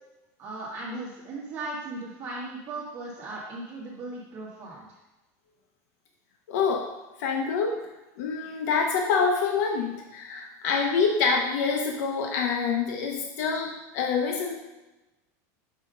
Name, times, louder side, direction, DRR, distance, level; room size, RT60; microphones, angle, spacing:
voice 1, 0.4-4.9, right 2 dB, 30° right, -7 dB, 1.5 m, -37 dB
voice 2, 6.5-6.9 7.2-7.8 8.2-14.5, left 5 dB, 80° left, 1 dB, 0.9 m, -26 dB
6.6 x 3.7 x 5.3 m, 1.0 s
supercardioid pair, 155°, 9 cm